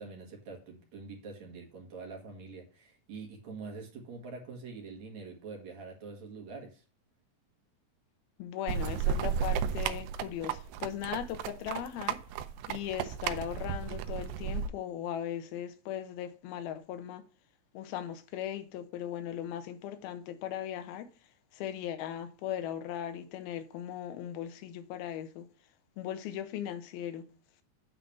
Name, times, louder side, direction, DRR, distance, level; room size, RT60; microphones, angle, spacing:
voice 1, 0.0-6.8, right 4 dB, 50° right, 2.7 m, -45 dB
voice 2, 8.4-12.2 12.7-17.2 17.7-21.1 21.5-25.5 26.0-27.2, left 10 dB, 75° left, 2.7 m, -38 dB
sound 1, 8.7-14.7, right 8 dB, 90° right, 2.8 m, -33 dB
9.1 x 4.0 x 6.9 m
omnidirectional pair, 4.6 m